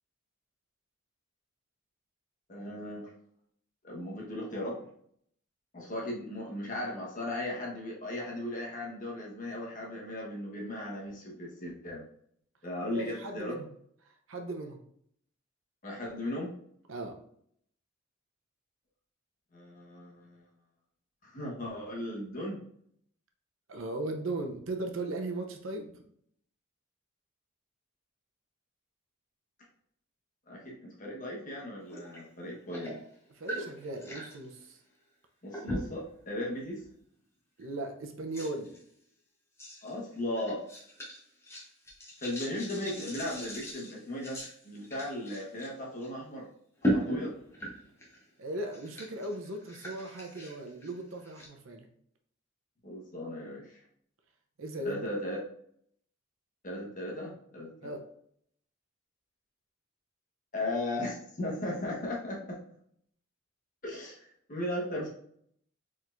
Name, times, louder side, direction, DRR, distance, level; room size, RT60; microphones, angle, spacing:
voice 1, 2.5-3.1 3.8-4.9 5.7-12.0 12.6-13.6 15.8-16.5 19.5-20.4 21.2-22.6 30.5-33.0 35.4-36.8 39.8-40.6 42.2-44.4 44.6-46.5 46.8-47.4 52.8-53.8 54.8-55.4 56.6-58.0 60.5-62.6 63.8-65.1, left 1 dB, 40° left, -3 dB, 1.3 m, -37 dB
voice 2, 12.9-13.7 14.0-14.8 16.9-17.1 23.7-25.9 33.3-34.8 37.6-38.8 48.4-51.9 54.6-55.0 57.8-58.0, right 2 dB, 85° right, 4 dB, 0.8 m, -37 dB
sound 1, 31.9-32.2 32.5-34.4 35.5-36.1 36.6-36.8 37.6-37.7 38.3-38.8 39.6-39.9 40.4-45.7 46.0-46.1 46.8-48.2 48.5-51.5, equal, 15° left, 1.0 m, -37 dB
4.5 x 3.7 x 2.6 m, 0.66 s
head